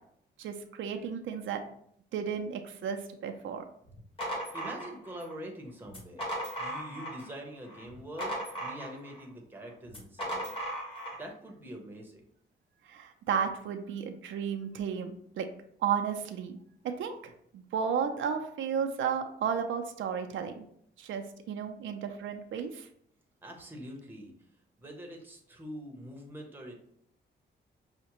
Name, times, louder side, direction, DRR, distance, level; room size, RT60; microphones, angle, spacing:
voice 1, 0.4-1.6 2.1-3.6 12.9-15.5 15.8-16.6 16.8-20.6 21.0-22.9, right 7 dB, 85° right, 5 dB, 0.5 m, -33 dB
sound 1, 3.9-5.3 5.9-7.3 7.7-9.2 9.9-11.2, right 1 dB, 30° left, 1.3 m, -37 dB
voice 2, 4.5-10.5 11.1-12.2 23.4-24.3 24.8-26.7, equal, 10° right, 1 dB, 0.8 m, -44 dB
5.6 x 2.1 x 2.9 m, 0.68 s
wide cardioid pair, 145°, 20 cm